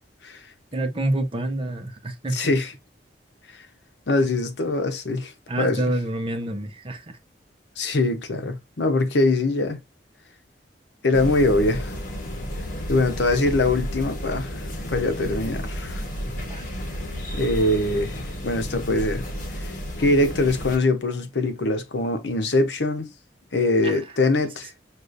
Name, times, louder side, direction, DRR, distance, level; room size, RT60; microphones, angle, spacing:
voice 1, 0.7-2.6 5.5-7.2 16.2-16.7 23.8-24.2, right 1 dB, 30° right, 0.7 m, -28 dB
voice 2, 2.3-2.7 4.1-5.3 5.6-5.9 7.8-9.8 11.0-11.9 12.9-14.6 14.9-16.0 17.3-19.2 19.6-19.7 20.0-23.1 23.5-24.7, left 2 dB, 70° left, 0.8 m, -23 dB
sound 1, 11.1-20.8, equal, 50° left, 1.2 m, -32 dB
6.4 x 2.5 x 2.5 m
head